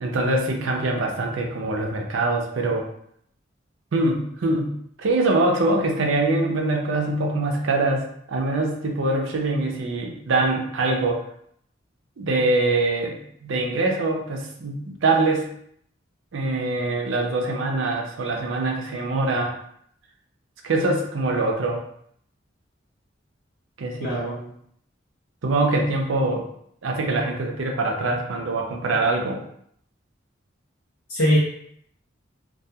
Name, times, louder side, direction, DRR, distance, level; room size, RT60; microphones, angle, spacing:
voice 1, 0.0-2.9 3.9-4.7 5.0-11.2 12.2-15.5 16.3-19.6 20.6-21.8 23.8-24.5 25.4-26.5 26.8-29.4, right 2 dB, 85° right, 1 dB, 0.5 m, -23 dB
voice 2, 24.0-24.4 31.1-31.4, equal, 75° left, -7 dB, 0.7 m, -21 dB
2.3 x 2.3 x 2.7 m, 0.68 s
head